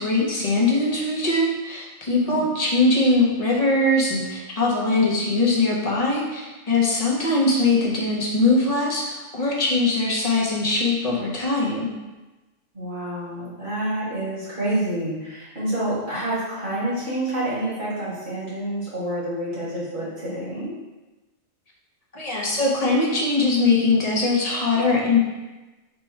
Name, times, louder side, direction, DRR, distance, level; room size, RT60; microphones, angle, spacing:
voice 1, 0.0-11.9 22.1-25.2, left 2 dB, 35° left, -3 dB, 0.7 m, -21 dB
voice 2, 12.7-20.7, right 1 dB, 45° right, -9 dB, 1.7 m, -28 dB
4.5 x 2.2 x 4.3 m, 1.1 s
omnidirectional pair, 1.3 m